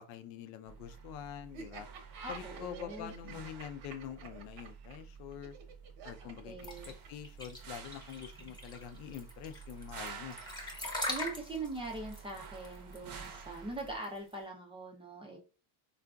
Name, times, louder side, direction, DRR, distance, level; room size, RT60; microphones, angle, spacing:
voice 1, 0.0-1.9 2.3-5.6 6.0-10.4, left 9 dB, 80° left, 9 dB, 0.6 m, -46 dB
sound 1, 0.7-14.0, right 6 dB, 50° right, 0.7 m, -50 dB
Laughter, 1.5-7.3, right 5 dB, 75° right, 1.0 m, -50 dB
voice 2, 2.2-3.5 6.4-6.9 8.4-8.5 11.1-15.4, right 2 dB, 10° right, 0 dB, 0.4 m, -42 dB
sound 2, 6.6-14.3, left 1 dB, 10° left, 0.8 m, -41 dB
3.8 x 2.4 x 2.2 m, 0.35 s
cardioid pair, 120°, 48 cm